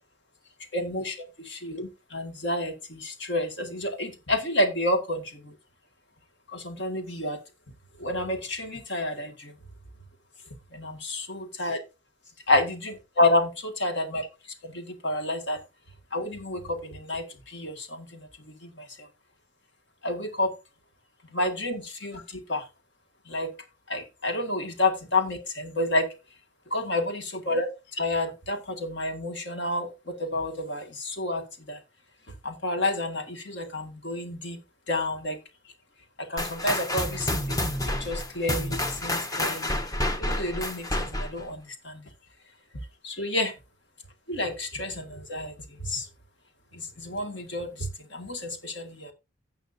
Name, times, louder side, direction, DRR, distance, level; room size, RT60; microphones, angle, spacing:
voice 1, 0.7-5.5 6.5-7.4 8.0-9.5 10.7-11.8 12.5-14.3 14.6-15.6 16.1-18.3 18.6-19.1 20.0-20.5 21.3-22.7 23.3-23.5 23.9-26.1 26.7-31.4 31.7-31.8 32.4-34.6 34.9-35.4 36.2-37.7 38.0-39.7 40.2-42.0 43.0-43.5 44.3-45.5 45.8-46.1 46.7-49.1, left 2 dB, 60° left, 1.9 m, -29 dB
sound 1, 36.4-41.4, left 1 dB, 20° left, 0.9 m, -29 dB
16.5 x 5.8 x 2.7 m
head